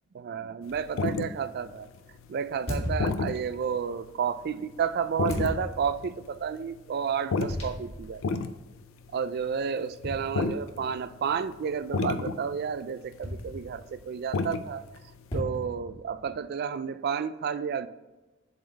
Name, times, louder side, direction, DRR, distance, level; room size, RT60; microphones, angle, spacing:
voice 1, 0.1-1.9 2.3-8.4 9.1-14.8 15.3-17.9, right 7 dB, 50° right, 0.3 m, -31 dB
sound 1, 0.6-1.3 1.9-2.2 2.7-3.7 4.0-4.1 4.5-4.9 5.2-5.8 6.0-6.3 6.5-9.6 10.0-10.8 11.3-11.6 11.9-12.7 13.1-13.2 13.4-13.9 14.1-14.6 14.9-15.3, left 4 dB, 70° left, 0.4 m, -30 dB
sound 2, 0.7-0.9 2.7-3.7 5.3-6.1 7.5-8.1 8.6-8.7 10.0-10.9 13.2-14.0 15.3-16.4, left 1 dB, 30° left, 1.7 m, -36 dB
7.7 x 4.0 x 4.0 m
head